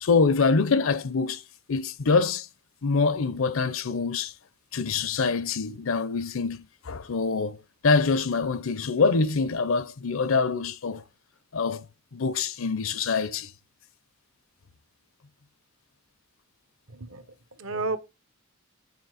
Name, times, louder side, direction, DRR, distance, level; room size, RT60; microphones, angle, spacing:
voice 1, 0.0-1.4 1.7-2.5 2.8-4.3 4.7-7.6 7.8-11.0 11.5-11.8 12.1-13.5, left 4 dB, 70° left, 0.6 m, -25 dB
voice 2, 16.9-18.0, right 3 dB, 65° right, 0.9 m, -32 dB
8.3 x 4.1 x 4.8 m
head